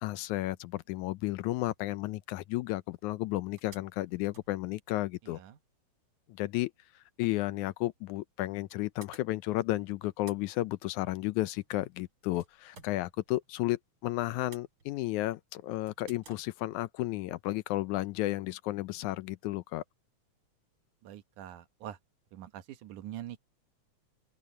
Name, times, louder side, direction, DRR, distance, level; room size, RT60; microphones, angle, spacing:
voice 1, 0.0-5.4 6.3-6.7 7.2-19.8, left 17 dB, 80° left, 2.0 m, -33 dB
sound 1, 3.2-3.3 3.5-5.4 7.4-7.5 8.4-9.7 10.0-13.7 14.1-15.3 15.9-16.5, right 4 dB, 40° right, 4.0 m, -57 dB
voice 2, 5.2-5.6 21.0-22.0 22.3-23.4, right 11 dB, 80° right, 2.5 m, -44 dB
open air
omnidirectional pair, 3.6 m